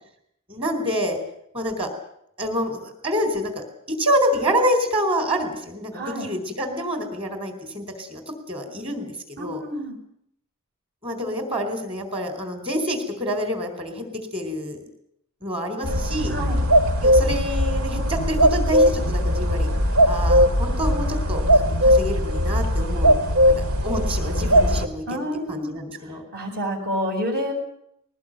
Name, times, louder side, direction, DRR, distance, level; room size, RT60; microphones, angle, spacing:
voice 1, 0.5-1.2 1.5-1.9 2.4-9.1 9.4-9.6 11.0-14.0 14.3-14.8 15.4-16.3 17.0-19.7 20.1-23.2 23.8-25.2 25.5-26.2, equal, 25° right, 6 dB, 4.4 m, -27 dB
voice 2, 5.9-6.3 9.4-10.0 16.3-16.6 25.1-25.7 26.3-27.5, equal, 50° right, 0 dB, 6.9 m, -28 dB
sound 1, 15.8-24.9, equal, 75° right, 2.2 m, -19 dB
21.0 x 19.5 x 9.1 m, 0.73 s
head